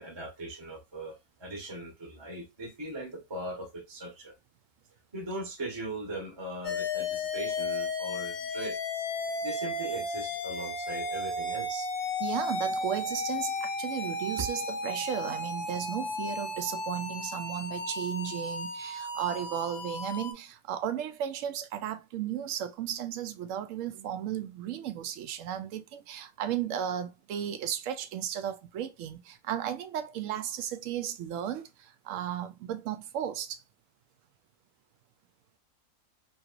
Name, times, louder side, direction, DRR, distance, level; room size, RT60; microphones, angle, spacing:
voice 1, 0.0-4.4 5.1-8.8 9.4-11.9, right 1 dB, 25° right, 0.8 m, -39 dB
sound 1, 6.6-20.3, left 2 dB, 65° left, 1.1 m, -34 dB
voice 2, 12.2-33.6, right 10 dB, 70° right, 0.8 m, -35 dB
3.0 x 2.9 x 2.4 m
omnidirectional pair, 1.6 m